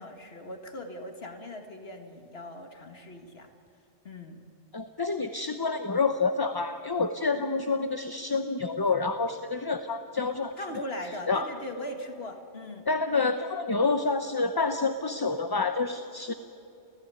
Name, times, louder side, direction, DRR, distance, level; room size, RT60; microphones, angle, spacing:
voice 1, 0.0-3.5 4.0-4.4 10.6-12.9, left 1 dB, 65° left, 5 dB, 2.1 m, -40 dB
voice 2, 4.7-10.5 11.3-11.5 12.9-16.3, left 4 dB, 25° left, 8 dB, 0.7 m, -28 dB
30.0 x 15.5 x 9.5 m, 2.8 s
omnidirectional pair, 1.1 m